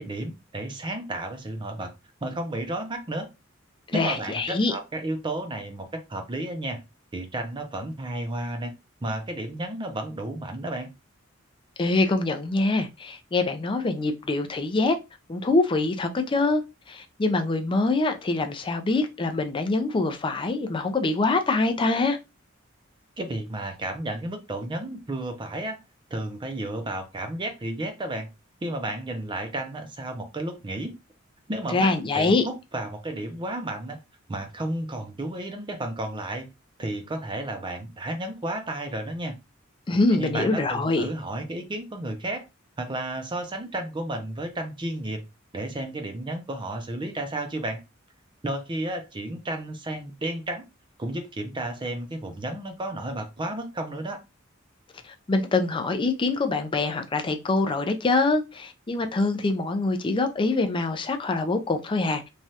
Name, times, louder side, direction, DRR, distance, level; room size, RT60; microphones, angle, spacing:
voice 1, 0.0-1.9 2.2-3.3 3.9-6.8 7.1-8.7 9.0-10.9 23.2-25.8 26.1-28.3 28.6-31.0 31.5-34.0 34.3-36.5 36.8-39.4 40.1-42.5 42.8-45.2 45.5-47.8 48.4-50.7 51.0-54.2, right 1 dB, 25° right, 0.5 m, -32 dB
voice 2, 3.9-4.7 11.8-15.0 15.3-22.2 31.7-32.4 39.9-41.1 55.0-62.2, left 3 dB, 25° left, 0.4 m, -24 dB
3.1 x 2.3 x 2.7 m
head